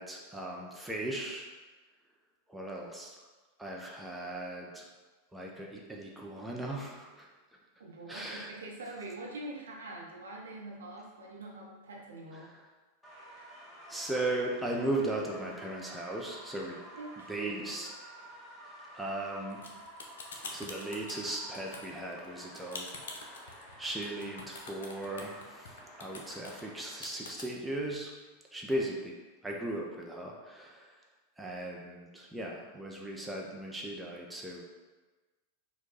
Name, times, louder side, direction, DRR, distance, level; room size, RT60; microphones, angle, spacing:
voice 1, 0.0-1.5 2.5-3.2 3.6-4.9 5.3-7.3 8.1-8.5 12.3-12.7 13.9-16.8 17.3-17.9 18.9-19.6 20.4-28.1 28.5-29.2 29.4-31.0 31.4-34.6, right 1 dB, 5° right, -2 dB, 0.6 m, -37 dB
voice 2, 7.8-12.5 17.0-17.9, right 2 dB, 65° right, -2 dB, 0.8 m, -44 dB
sound 1, 13.0-26.9, equal, 15° left, 1.0 m, -51 dB
sound 2, 19.5-27.5, left 3 dB, 65° left, 0.6 m, -45 dB
4.5 x 2.3 x 4.0 m, 1.3 s
figure-of-eight pair, 90°, 0 cm